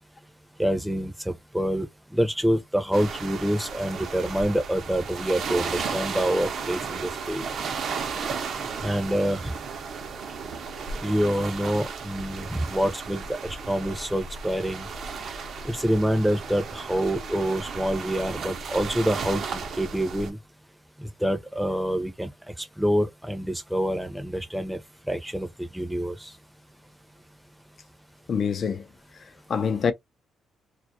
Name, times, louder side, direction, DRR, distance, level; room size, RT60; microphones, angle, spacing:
voice 1, 0.6-7.5 8.8-9.5 11.0-14.9 15.6-20.4 21.0-22.3 22.6-24.8 25.1-26.3, equal, 5° right, 0.6 m, -26 dB
sound 1, 2.9-20.3, right 5 dB, 60° right, 0.6 m, -34 dB
voice 2, 28.3-28.8 29.5-29.9, left 6 dB, 50° left, 0.5 m, -25 dB
2.3 x 2.0 x 2.7 m
cardioid pair, 90°, 0 cm